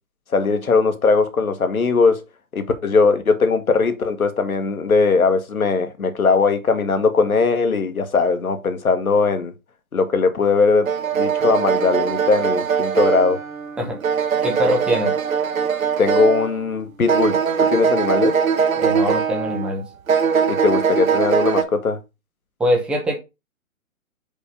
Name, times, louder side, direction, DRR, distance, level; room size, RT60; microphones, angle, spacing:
voice 1, 0.3-2.2 2.5-9.5 9.9-10.9 11.1-13.4 16.0-17.4 17.7-18.4 20.5-22.0, left 4 dB, 75° left, 1.6 m, -19 dB
sound 1, 10.9-16.7 17.1-19.7 20.1-21.6, right 7 dB, 70° right, 1.1 m, -21 dB
voice 2, 14.4-15.1 18.8-19.8 22.6-23.2, equal, ahead, 0.8 m, -22 dB
5.4 x 4.1 x 5.2 m
figure-of-eight pair, 135°, 42 cm